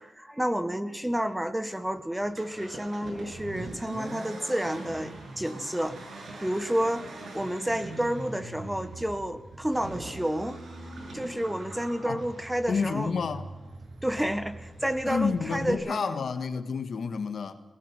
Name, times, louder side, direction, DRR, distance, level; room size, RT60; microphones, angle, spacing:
voice 1, 0.0-6.0 6.4-10.6 11.1-13.1 14.0-16.2, equal, 10° right, 1.5 m, -30 dB
Accelerating revving vroom, 2.2-15.7, right 2 dB, 80° right, 7.4 m, -42 dB
voice 2, 12.7-13.5 15.0-17.6, left 5 dB, 75° left, 1.6 m, -30 dB
21.0 x 18.5 x 9.1 m
wide cardioid pair, 100°, 0 cm